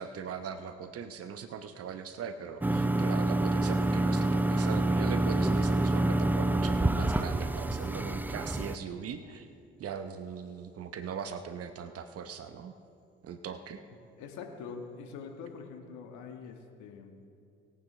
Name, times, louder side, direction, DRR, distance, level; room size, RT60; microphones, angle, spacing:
voice 1, 0.0-9.5 9.8-12.7 13.2-13.8, right 7 dB, 50° right, 9 dB, 0.9 m, -40 dB
sound 1, 2.6-8.8, right 2 dB, 5° right, 0.5 m, -27 dB
voice 2, 14.2-17.1, left 5 dB, 70° left, 4 dB, 1.7 m, -44 dB
21.0 x 8.9 x 3.3 m, 2.4 s
hypercardioid pair, 60°, 30 cm